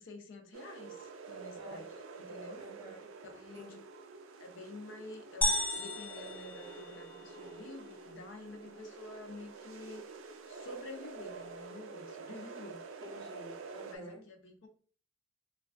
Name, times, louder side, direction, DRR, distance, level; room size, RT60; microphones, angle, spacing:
voice 1, 0.0-2.6 3.2-3.8 4.4-10.1 10.5-12.8 13.9-14.7, left 2 dB, 65° left, 5 dB, 0.5 m, -49 dB
sound 1, 0.5-14.0, right 4 dB, 70° right, 0.4 m, -48 dB
voice 2, 2.6-3.0 3.5-3.8 8.6-8.7 13.0-14.2, left 1 dB, 20° right, 0 dB, 0.7 m, -49 dB
sound 2, 5.4-7.4, left 1 dB, 10° left, 0.3 m, -34 dB
3.1 x 2.3 x 2.4 m, 0.43 s
head